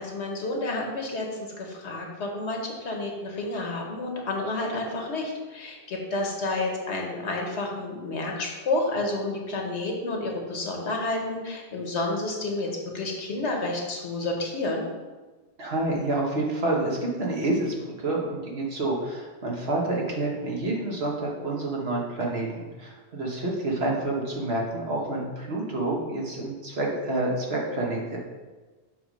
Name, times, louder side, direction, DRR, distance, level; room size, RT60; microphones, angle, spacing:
voice 1, 0.0-12.7 12.9-14.9, left 2 dB, 85° left, 1 dB, 1.4 m, -30 dB
voice 2, 15.6-28.2, right 2 dB, 70° right, -2 dB, 1.4 m, -28 dB
7.0 x 3.2 x 5.2 m, 1.3 s
omnidirectional pair, 1.1 m